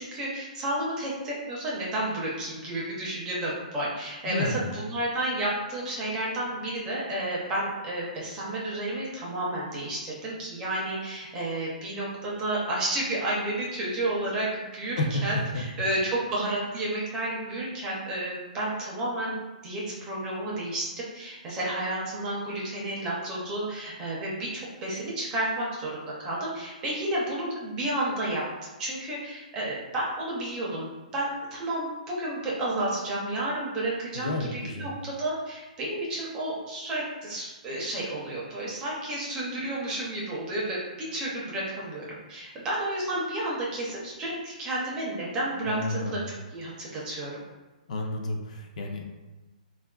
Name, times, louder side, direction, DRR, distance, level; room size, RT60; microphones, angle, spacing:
voice 1, 0.0-14.5 14.7-19.3 19.6-24.5 24.8-28.4 28.8-46.2 46.5-47.3, right 1 dB, 15° right, -5 dB, 0.5 m, -31 dB
voice 2, 4.3-4.7 15.0-15.2 34.1-34.9 45.6-46.3 47.9-49.0, left 2 dB, 55° left, 1 dB, 0.4 m, -31 dB
3.2 x 2.4 x 2.2 m, 1.2 s
hypercardioid pair, 170°, 5 cm